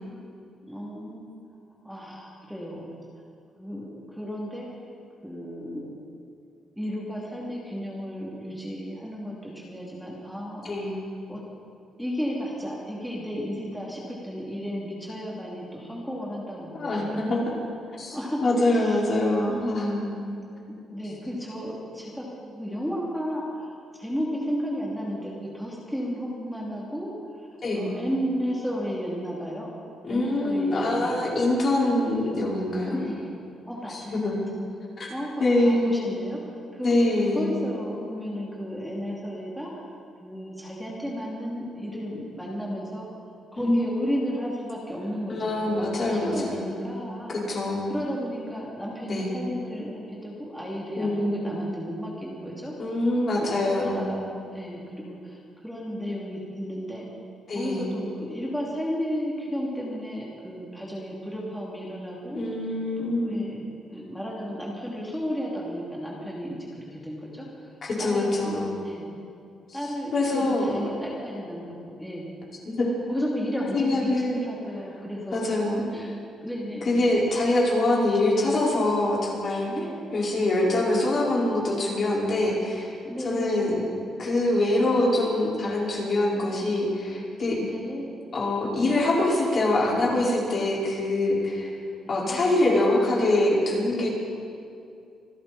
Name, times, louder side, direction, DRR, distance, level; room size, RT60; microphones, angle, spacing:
voice 1, 0.6-1.3 1.8-2.9 3.6-4.7 5.2-6.0 6.8-10.7 11.3-11.4 12.0-17.4 18.1-18.4 18.7-19.0 19.5-19.9 20.7-23.7 24.0-27.1 27.4-27.5 27.7-29.7 30.1-31.2 32.9-33.3 33.7-34.2 35.1-39.7 40.2-43.1 43.5-47.4 47.9-52.7 53.4-57.1 57.5-62.5 63.0-67.7 68.0-69.1 69.7-72.3 73.1-75.4 75.9-76.1 76.4-77.0 77.9-78.1 79.7-80.0 80.6-81.0 83.0-83.8 84.9-85.2 87.5-88.2 92.1-92.5, equal, ahead, -5 dB, 3.0 m, -33 dB
voice 2, 10.6-11.0 16.7-17.5 18.0-20.3 27.6-27.9 30.0-33.1 33.9-34.4 35.0-35.1 35.4-36.0 36.8-37.6 43.6-43.8 45.3-46.8 47.5-47.9 49.1-49.3 50.9-51.5 52.8-54.1 57.5-57.9 62.3-63.5 67.8-68.8 70.1-70.8 72.6-72.9 73.7-74.4 75.3-75.8 76.8-79.7 80.1-83.0 83.2-83.8 84.2-87.6 88.3-91.7 92.1-94.1, left 1 dB, 45° left, -4 dB, 5.0 m, -24 dB
26.0 x 11.5 x 4.3 m, 2.5 s
cardioid pair, 90°, 0 cm